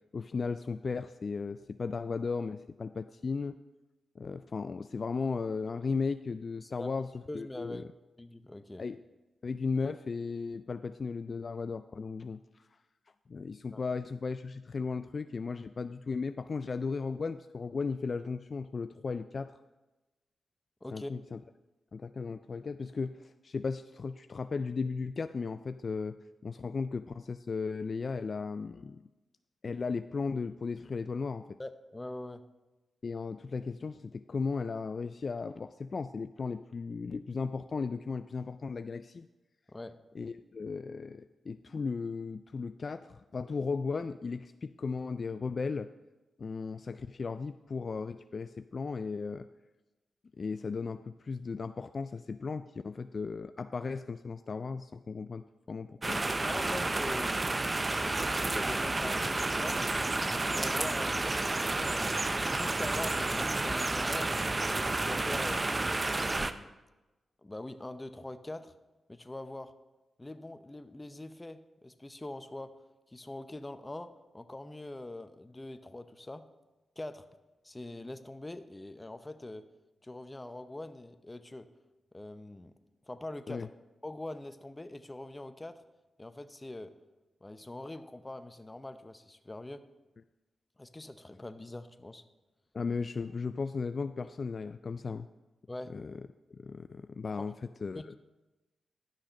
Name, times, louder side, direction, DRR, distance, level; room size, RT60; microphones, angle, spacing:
voice 1, 0.1-3.5 4.2-7.1 7.3-7.8 8.8-9.0 9.4-12.4 13.3-19.5 20.9-21.4 21.9-26.2 26.4-29.0 29.6-31.4 33.0-39.3 40.1-45.9 46.4-49.5 50.4-56.3 83.5-83.7 92.7-95.3 95.9-96.2 96.5-97.5 97.8-98.2, left 4 dB, 50° left, 11 dB, 0.3 m, -36 dB
voice 2, 6.6-6.9 7.3-7.8 8.2-8.8 13.7-13.8 20.8-21.1 31.6-32.4 39.7-40.0 56.4-57.3 58.0-59.8 60.3-62.1 62.5-64.3 64.8-65.6 66.1-66.7 67.4-68.7 69.1-69.7 70.2-72.7 73.1-76.5 77.0-77.2 77.6-79.6 80.0-81.7 82.1-82.7 83.1-83.7 84.0-85.8 86.2-86.9 87.4-89.8 90.8-92.2 95.7-95.9 97.4-97.5 97.9-98.2, left 1 dB, 20° left, 10 dB, 0.7 m, -43 dB
sound 1, 56.0-66.5, right 2 dB, 30° right, 0.5 m, -31 dB
12.0 x 6.4 x 5.2 m, 1.1 s
cardioid pair, 65°, 0 cm